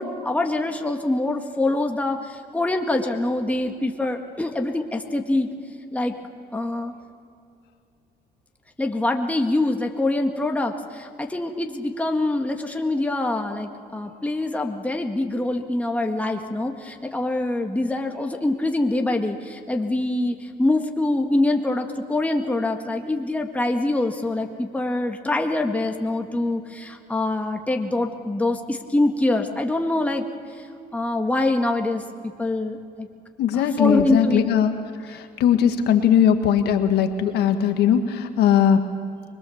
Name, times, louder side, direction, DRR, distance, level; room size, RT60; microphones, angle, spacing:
voice 1, 0.0-2.2 2.5-5.5 5.9-6.1 6.5-6.9 8.8-30.3 30.9-33.1 33.5-34.4, left 2 dB, 10° left, 3 dB, 1.8 m, -24 dB
voice 2, 33.4-34.7 35.1-38.8, left 9 dB, 75° left, 6 dB, 1.7 m, -19 dB
24.0 x 22.0 x 7.2 m, 2.5 s
cardioid pair, 110°, 17 cm